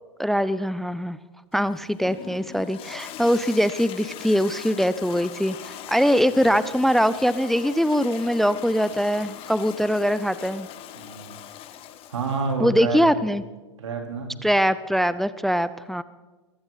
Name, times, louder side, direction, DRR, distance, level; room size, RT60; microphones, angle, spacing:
voice 1, 0.2-1.2 1.5-10.7 12.6-13.4 14.4-16.0, equal, ahead, 15 dB, 0.5 m, -22 dB
Toilet flush, 1.5-12.6, left 11 dB, 40° left, 1.4 m, -41 dB
voice 2, 10.9-11.3 12.1-13.0 13.8-14.3, right 4 dB, 85° right, 3 dB, 3.7 m, -29 dB
22.5 x 15.0 x 4.0 m, 1.2 s
hypercardioid pair, 110°, 15 cm